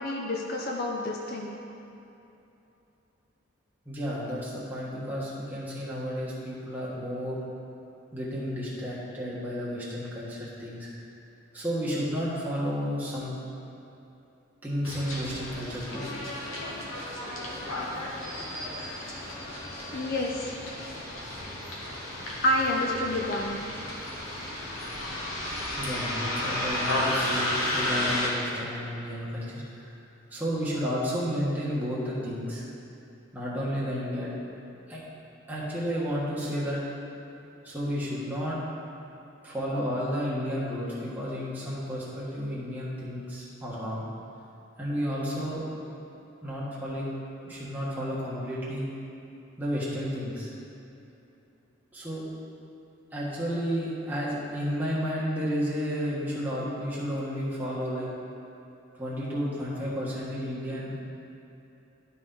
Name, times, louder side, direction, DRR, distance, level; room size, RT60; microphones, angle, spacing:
voice 1, 0.0-1.6 19.9-20.5 22.4-23.6, left 1 dB, 45° left, 0 dB, 0.6 m, -28 dB
voice 2, 3.8-7.4 8.1-10.9 11.5-13.4 14.6-16.1 25.8-29.9 30.3-32.6 33.3-34.4 34.9-35.0 35.5-36.8 37.6-38.6 39.4-44.0 44.8-45.6 46.4-47.1 47.4-48.9 49.6-50.5 51.9-52.2 53.1-58.1 59.0-61.0, equal, 10° right, -8 dB, 1.4 m, -32 dB
Bus, 14.8-28.3, left 1 dB, 80° left, 1.3 m, -33 dB
12.0 x 4.2 x 3.8 m, 2.9 s
head